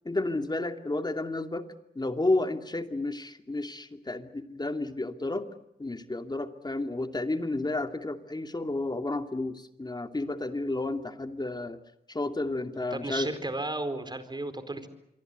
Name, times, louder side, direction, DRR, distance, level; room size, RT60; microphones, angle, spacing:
voice 1, 0.0-1.6 1.9-5.5 5.8-11.8 12.1-13.3, left 2 dB, 25° left, 6 dB, 2.6 m, -31 dB
voice 2, 12.9-14.9, right 2 dB, 25° right, 10 dB, 4.6 m, -34 dB
27.0 x 23.5 x 8.2 m, 0.83 s
cardioid pair, 75°, 17 cm